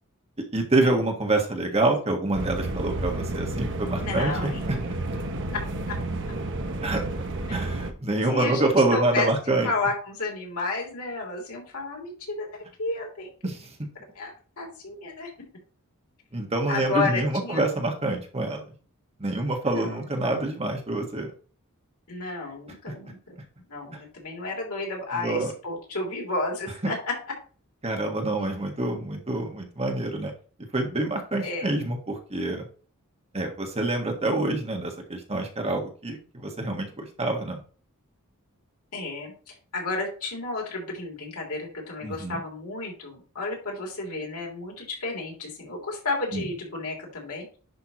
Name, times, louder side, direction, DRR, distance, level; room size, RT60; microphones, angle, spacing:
voice 1, 0.5-4.8 6.8-7.0 7.5-9.7 13.4-13.7 16.3-18.6 19.2-21.3 25.1-25.5 26.8-26.9 27.8-30.3 30.7-32.7 33.3-37.6 42.0-42.4 46.3-46.4, right 2 dB, 30° right, 2 dB, 1.5 m, -26 dB
sound 1, 2.3-7.9, right 2 dB, 60° right, 0.9 m, -31 dB
voice 2, 4.0-4.6 5.5-5.6 7.5-7.6 8.2-9.3 9.6-13.3 14.1-14.3 14.6-15.3 16.7-17.6 19.7-20.4 22.1-23.3 23.7-27.1 31.4-31.7 38.9-47.6, left 3 dB, 70° left, -1 dB, 3.4 m, -32 dB
10.5 x 5.6 x 3.0 m, 0.40 s
head